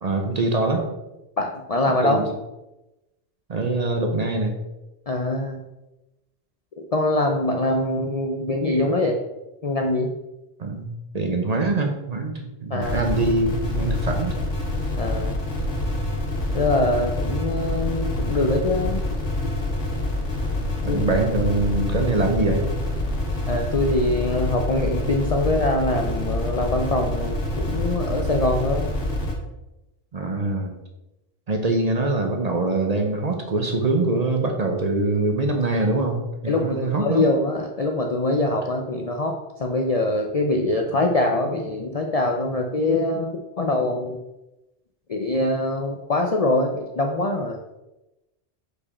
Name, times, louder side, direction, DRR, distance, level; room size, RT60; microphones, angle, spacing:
voice 1, 0.0-0.9 2.0-2.2 3.5-4.6 10.6-14.4 20.8-22.6 30.1-30.7 31.5-37.3, right 2 dB, 40° right, 3 dB, 0.6 m, -23 dB
voice 2, 1.4-2.2 5.1-5.6 6.9-9.2 9.6-10.1 12.7-13.0 15.0-15.4 16.5-19.0 20.9-21.0 23.5-28.9 36.5-44.2 45.1-47.6, left 2 dB, 50° left, 2 dB, 0.4 m, -23 dB
sound 1, 12.8-29.3, left 1 dB, 80° left, 1.8 m, -26 dB
5.0 x 4.8 x 4.2 m, 0.98 s
omnidirectional pair, 1.2 m